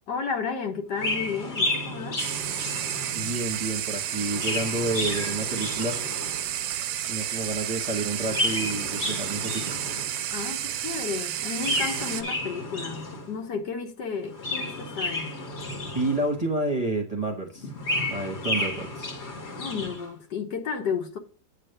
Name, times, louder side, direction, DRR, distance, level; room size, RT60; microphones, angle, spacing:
voice 1, 0.1-2.2 10.3-15.4 19.6-21.2, left 5 dB, 70° left, 1.7 m, -32 dB
Chirp tweet, 0.9-3.4 4.1-6.5 8.1-10.3 11.5-13.4 14.2-16.5 17.5-20.1, left 1 dB, 40° left, 1.5 m, -32 dB
sound 1, 2.2-12.2, right 11 dB, 70° right, 1.0 m, -31 dB
voice 2, 3.1-6.0 7.1-9.8 15.8-17.7 18.0-19.1, right 2 dB, 25° right, 0.9 m, -29 dB
8.7 x 3.3 x 6.5 m
omnidirectional pair, 2.0 m